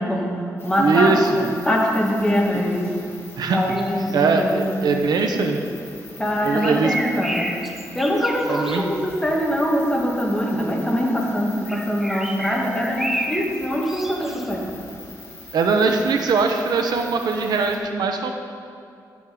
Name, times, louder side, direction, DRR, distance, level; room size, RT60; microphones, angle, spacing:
voice 1, 0.0-2.9 3.5-4.8 6.2-7.5 7.9-14.6, equal, 10° left, -2 dB, 1.7 m, -23 dB
sound 1, 0.6-17.8, left 2 dB, 35° left, 1.9 m, -43 dB
voice 2, 0.8-1.4 3.4-3.6 4.1-5.6 6.4-6.9 8.5-8.8 15.5-18.3, right 4 dB, 80° right, 4 dB, 0.9 m, -21 dB
sound 2, 3.7-4.2 6.4-8.9 11.7-13.5 13.8-14.5, equal, 5° right, 0.8 m, -31 dB
11.5 x 7.2 x 5.0 m, 2.4 s
wide cardioid pair, 120°, 7 cm